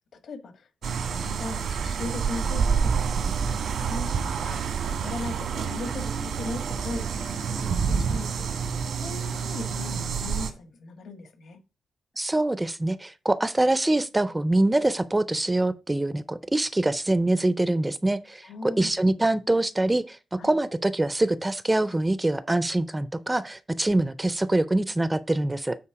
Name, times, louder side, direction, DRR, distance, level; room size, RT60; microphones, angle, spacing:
voice 1, 0.2-7.1 7.4-11.6 18.4-19.0 20.4-20.5, left 3 dB, 65° left, 1.5 m, -39 dB
sound 1, 0.8-10.5, right 6 dB, 90° right, 1.4 m, -28 dB
voice 2, 12.2-25.8, right 2 dB, 10° right, 0.4 m, -24 dB
8.6 x 4.4 x 4.7 m
wide cardioid pair, 165°, 0 cm